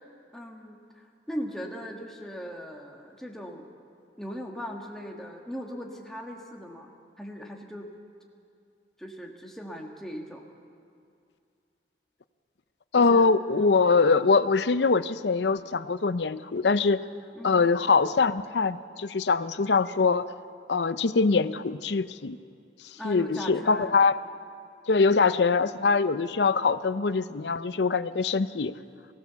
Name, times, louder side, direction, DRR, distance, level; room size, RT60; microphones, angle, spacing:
voice 1, 0.3-3.7 4.2-7.9 9.0-10.4 13.0-13.8 17.4-17.6 23.0-23.9, equal, ahead, 0 dB, 1.7 m, -39 dB
voice 2, 12.9-17.0 17.4-20.3 20.7-22.4 23.0-24.2 24.9-28.7, left 4 dB, 80° left, 13 dB, 0.6 m, -23 dB
23.0 x 16.0 x 6.9 m, 2.4 s
head